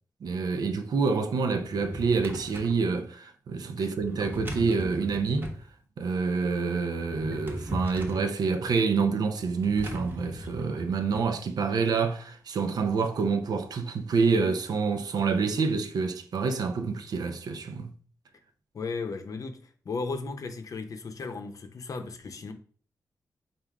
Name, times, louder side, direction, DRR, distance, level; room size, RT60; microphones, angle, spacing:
voice 1, 0.2-5.5 6.0-17.9, right 4 dB, 80° right, 0.5 m, -27 dB
Drawer open or close, 1.5-2.8 4.0-5.6 7.0-8.3 9.6-11.3, equal, 35° right, 0.9 m, -38 dB
voice 2, 18.7-22.5, left 4 dB, 60° left, 0.6 m, -35 dB
3.5 x 2.5 x 4.6 m
wide cardioid pair, 95°, 7 cm